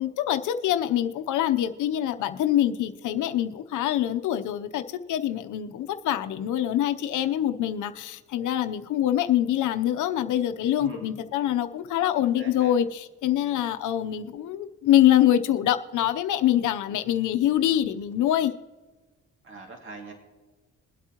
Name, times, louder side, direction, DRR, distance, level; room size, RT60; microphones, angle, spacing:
voice 1, 0.0-18.5, left 12 dB, 80° left, 9 dB, 0.8 m, -25 dB
voice 2, 10.7-11.2 12.2-12.7 19.4-20.1, right 3 dB, 40° right, 2 dB, 2.3 m, -42 dB
22.0 x 8.3 x 3.0 m, 1.3 s
cardioid pair, 90°, 30 cm